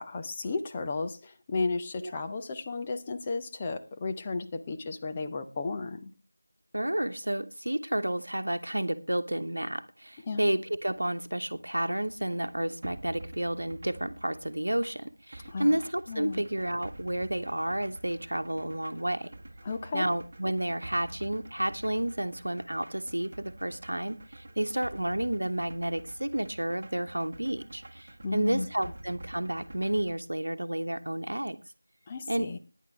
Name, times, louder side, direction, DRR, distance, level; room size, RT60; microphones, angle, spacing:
voice 1, 0.0-6.1 10.2-10.5 15.5-15.8 16.1-16.4 19.6-20.1 28.2-28.7 32.1-32.6, left 3 dB, 15° left, 5 dB, 0.6 m, -34 dB
voice 2, 6.7-19.3 19.9-31.6 32.3-32.5, right 1 dB, 65° right, 9 dB, 1.1 m, -31 dB
sound 1, 12.0-30.1, right 1 dB, 30° right, 1.3 m, -48 dB
16.5 x 10.0 x 3.2 m, 0.28 s
figure-of-eight pair, 170°, 0 cm